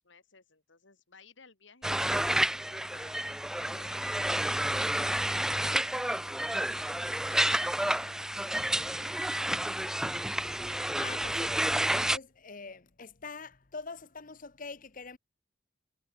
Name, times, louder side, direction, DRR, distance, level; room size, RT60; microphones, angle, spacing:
voice 1, 0.0-3.2 3.6-6.7 7.2-10.5, left 4 dB, 75° left, 2.8 m, -57 dB
sound 1, 1.8-12.2, right 1 dB, 5° right, 0.4 m, -30 dB
voice 2, 11.0-15.2, left 4 dB, 45° left, 1.2 m, -44 dB
head